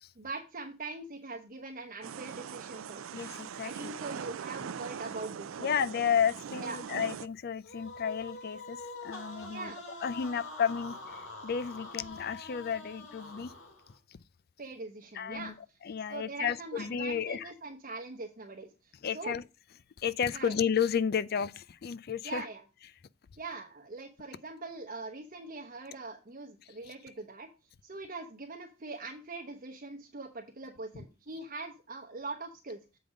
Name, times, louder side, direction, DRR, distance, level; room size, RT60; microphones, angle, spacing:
voice 1, 0.2-3.0 3.6-5.7 6.6-6.8 9.5-9.8 14.6-15.6 16.1-19.4 20.3-20.6 22.2-22.6 23.4-27.5 27.8-32.8, right 3 dB, 45° right, 0.9 m, -42 dB
sound 1, 2.0-7.3, right 7 dB, 85° right, 0.4 m, -41 dB
voice 2, 3.1-3.9 5.6-9.7 10.0-11.0 11.4-13.5 14.1-14.2 15.1-15.5 15.8-17.5 19.0-19.4 20.0-22.4 26.9-27.0 30.9-31.0, left 7 dB, 50° left, 0.4 m, -32 dB
sound 2, 7.6-14.0, left 2 dB, 85° left, 2.4 m, -45 dB
7.9 x 5.1 x 5.0 m
head